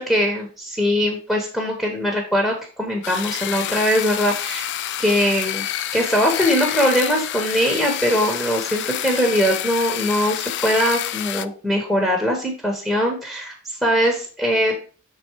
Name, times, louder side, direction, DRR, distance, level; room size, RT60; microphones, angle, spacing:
voice 1, 0.0-4.7 5.0-5.6 5.9-14.7, equal, ahead, -1 dB, 1.1 m, -21 dB
sound 1, 3.0-11.4, left 11 dB, 50° left, 0.3 m, -28 dB
6.8 x 4.1 x 4.6 m, 0.39 s
head